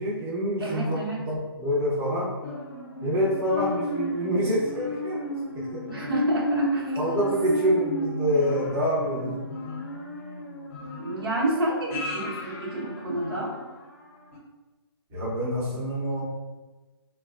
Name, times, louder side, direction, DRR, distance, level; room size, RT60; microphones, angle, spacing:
voice 1, 0.0-2.3 3.0-5.8 7.0-9.4 15.1-16.2, equal, 20° right, -8 dB, 0.8 m, -26 dB
voice 2, 0.6-1.3 5.9-7.0 11.0-13.6, right 2 dB, 60° right, -3 dB, 1.0 m, -29 dB
sound 1, 2.4-13.9 14.3-14.4, left 1 dB, 35° left, 0.7 m, -33 dB
4.4 x 2.2 x 2.4 m, 1.2 s
figure-of-eight pair, 145°, 13 cm